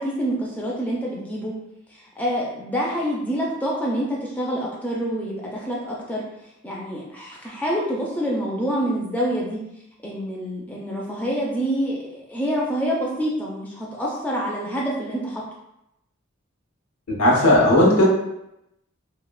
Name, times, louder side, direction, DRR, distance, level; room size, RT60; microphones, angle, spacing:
voice 1, 0.0-1.5 1.9-6.2 6.6-9.6 10.0-15.4, equal, 10° left, -4 dB, 0.3 m, -27 dB
voice 2, 17.2-18.0, left 1 dB, 80° left, -3 dB, 0.7 m, -15 dB
3.1 x 2.0 x 2.3 m, 0.84 s
head